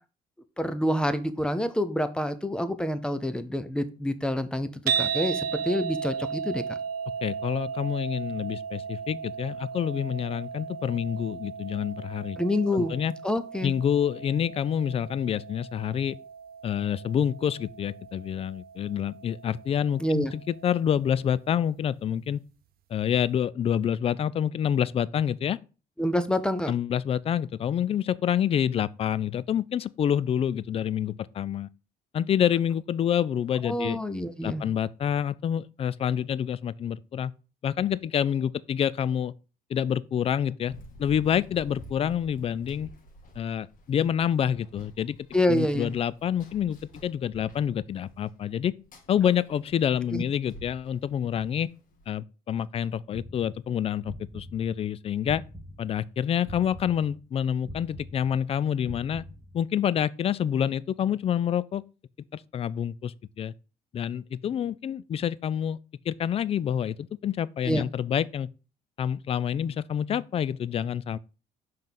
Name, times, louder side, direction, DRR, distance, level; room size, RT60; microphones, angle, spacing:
voice 1, 0.6-4.7 5.0-6.6 12.4-12.9 13.2-13.7 20.0-20.3 26.0-26.7 33.6-34.6 45.3-45.9 50.1-50.2 67.7-67.8, left 1 dB, 5° left, 0.7 m, -27 dB
sound 1, 4.9-21.1, right 6 dB, 60° right, 0.7 m, -36 dB
voice 2, 7.2-12.4 12.7-13.1 13.6-16.2 16.6-22.4 22.9-25.6 26.7-31.7 32.1-34.0 34.4-37.3 37.6-39.3 39.7-40.7 41.0-42.9 43.4-45.2 45.5-48.7 49.1-51.7 52.1-55.4 55.8-59.2 59.5-61.8 62.3-63.5 63.9-65.8 66.1-68.5 69.0-71.2, left 9 dB, 35° left, 0.3 m, -27 dB
Run, 40.7-52.1, equal, 50° left, 1.4 m, -50 dB
sound 2, 53.1-56.1 56.4-59.8, equal, 15° right, 1.5 m, -44 dB
5.4 x 3.7 x 5.8 m
cardioid pair, 110°, 17 cm